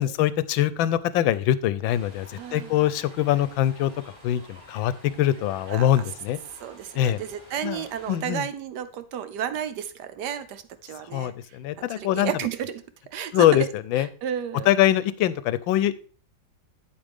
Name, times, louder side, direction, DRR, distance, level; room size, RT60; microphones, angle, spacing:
voice 1, 0.0-3.9 4.2-6.4 7.0-7.2 7.6-7.8 8.1-8.5 11.1-12.3 13.3-14.1 14.7-15.9, left 12 dB, 90° left, 16 dB, 1.4 m, -23 dB
sound 1, 1.9-8.2, equal, 10° right, 2.4 m, -50 dB
voice 2, 2.4-2.7 5.7-5.9 6.6-12.8 13.1-13.7 14.0-14.7, right 9 dB, 70° right, 12 dB, 1.1 m, -32 dB
8.6 x 7.8 x 3.5 m, 0.40 s
omnidirectional pair, 2.1 m